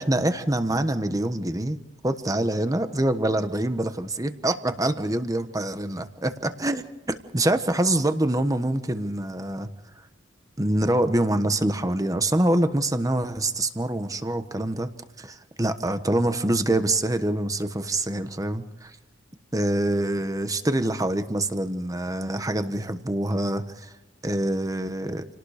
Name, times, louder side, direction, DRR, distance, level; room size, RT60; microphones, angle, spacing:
voice 1, 0.0-1.8 2.0-9.7 10.6-14.9 15.2-18.9 19.5-23.9 24.2-25.3, right 1 dB, 20° right, 9 dB, 1.2 m, -25 dB
29.0 x 18.5 x 5.0 m, 1.0 s
head